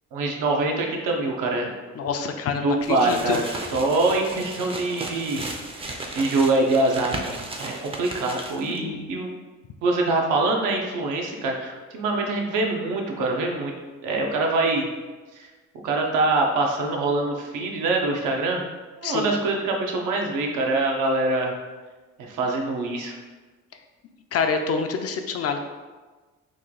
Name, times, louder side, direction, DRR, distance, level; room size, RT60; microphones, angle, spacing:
voice 1, 0.1-1.7 2.6-3.4 3.7-5.4 5.7-9.3 9.8-13.7 14.0-14.9 15.3-15.5 15.8-18.6 19.0-21.5 22.3-23.1, right 2 dB, 85° right, 1 dB, 0.7 m, -24 dB
voice 2, 2.0-3.4 8.7-9.1 19.0-19.4 24.3-25.6, left 5 dB, 50° left, 5 dB, 0.4 m, -27 dB
sound 1, 2.8-8.8, right 2 dB, 20° right, 0.4 m, -35 dB
3.1 x 2.3 x 3.7 m, 1.3 s
cardioid pair, 90°, 30 cm